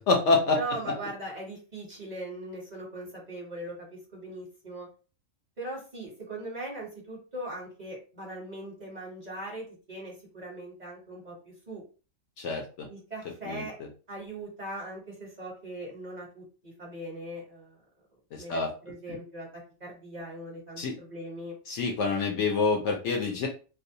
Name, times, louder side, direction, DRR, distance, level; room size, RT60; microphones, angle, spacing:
voice 1, 0.0-0.6 12.4-12.9 13.5-13.6 18.3-18.7 20.8-20.9 21.7-23.5, left 3 dB, 65° left, 1 dB, 0.8 m, -26 dB
voice 2, 0.5-4.9 5.6-11.8 12.9-13.7 14.1-17.8 18.4-19.5 19.8-21.5, right 1 dB, 35° right, -4 dB, 0.9 m, -40 dB
2.7 x 2.1 x 2.6 m, 0.36 s
omnidirectional pair, 1.4 m